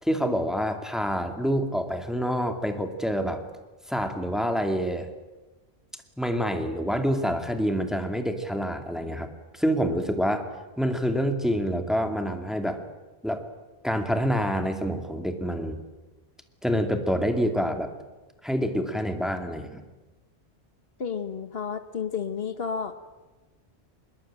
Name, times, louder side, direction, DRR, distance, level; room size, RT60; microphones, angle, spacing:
voice 1, 0.0-3.4 3.9-5.1 6.2-10.5 10.8-12.8 13.2-13.4 13.8-15.8 16.6-17.9 18.4-19.8, equal, ahead, 6 dB, 2.4 m, -27 dB
voice 2, 21.0-22.9, left 6 dB, 65° left, 10 dB, 1.5 m, -31 dB
25.0 x 21.5 x 8.9 m, 1.2 s
omnidirectional pair, 1.1 m